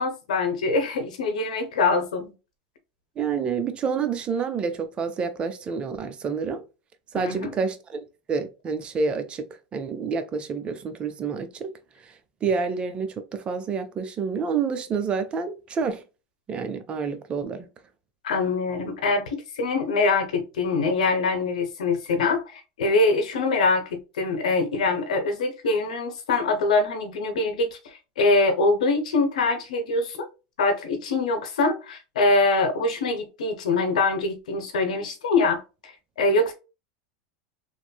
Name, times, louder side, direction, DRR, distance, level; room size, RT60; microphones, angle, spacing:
voice 1, 0.0-2.3 7.1-7.6 18.2-30.3 30.6-36.5, left 3 dB, 90° left, 0.8 m, -24 dB
voice 2, 3.2-6.6 7.1-9.4 9.7-11.7 12.4-16.0 16.5-17.7, right 5 dB, 25° right, 0.5 m, -28 dB
3.1 x 2.6 x 2.2 m
supercardioid pair, 125°, 4 cm